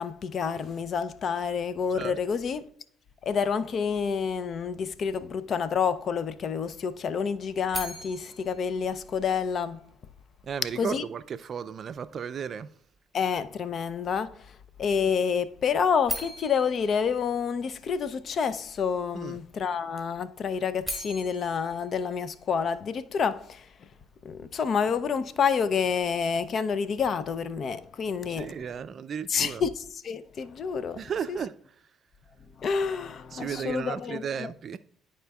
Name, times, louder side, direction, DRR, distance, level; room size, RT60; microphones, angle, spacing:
voice 1, 0.0-2.7 3.2-9.8 10.8-11.0 13.1-14.5 14.8-23.7 24.2-28.5 29.3-31.0 31.3-31.4 32.6-34.5, left 6 dB, 55° left, 0.5 m, -28 dB
sound 1, 7.7-9.8 16.0-18.2 20.6-23.0, equal, 5° right, 2.6 m, -40 dB
voice 2, 10.4-12.7 19.1-19.4 28.3-29.7 31.0-31.6 33.3-34.8, right 7 dB, 50° right, 0.4 m, -34 dB
12.5 x 4.3 x 2.3 m
supercardioid pair, 60°, 0 cm